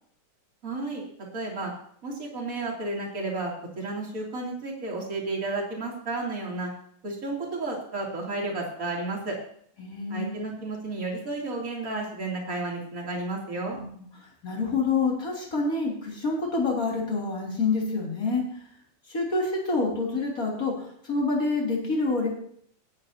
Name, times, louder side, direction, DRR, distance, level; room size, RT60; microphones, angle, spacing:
voice 1, 0.6-1.0 1.3-1.7 2.0-6.7 7.0-9.4 10.1-13.8, right 2 dB, 25° right, -2 dB, 3.4 m, -32 dB
voice 2, 9.8-10.4 13.7-14.0 14.4-18.4 19.1-22.3, left 3 dB, 25° left, -2 dB, 3.4 m, -27 dB
19.5 x 9.7 x 2.9 m, 0.62 s
omnidirectional pair, 3.5 m